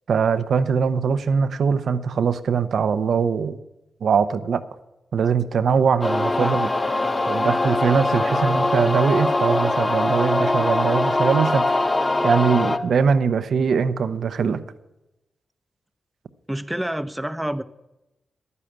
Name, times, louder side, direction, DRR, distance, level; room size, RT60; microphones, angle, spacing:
voice 1, 0.1-3.6 4.0-4.6 5.1-6.7 7.3-11.8 12.2-14.6, right 6 dB, 75° right, 12 dB, 0.8 m, -21 dB
sound 1, 6.0-12.8, left 2 dB, 25° left, 0.8 m, -22 dB
voice 2, 16.5-17.6, right 1 dB, 10° right, 13 dB, 0.7 m, -29 dB
11.5 x 9.7 x 7.4 m, 0.95 s
cardioid pair, 60°, 0 cm